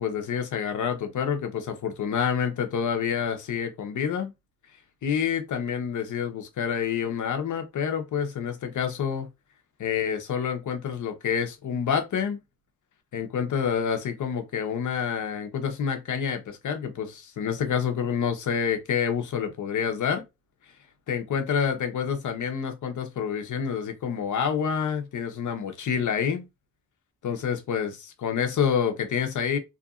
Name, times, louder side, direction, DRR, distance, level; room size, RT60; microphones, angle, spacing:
voice 1, 0.0-4.3 5.0-9.3 9.8-12.4 13.1-20.2 21.1-26.5 27.2-29.6, left 7 dB, 70° left, 0.8 m, -28 dB
2.8 x 2.5 x 2.4 m
cardioid pair, 80°, 32 cm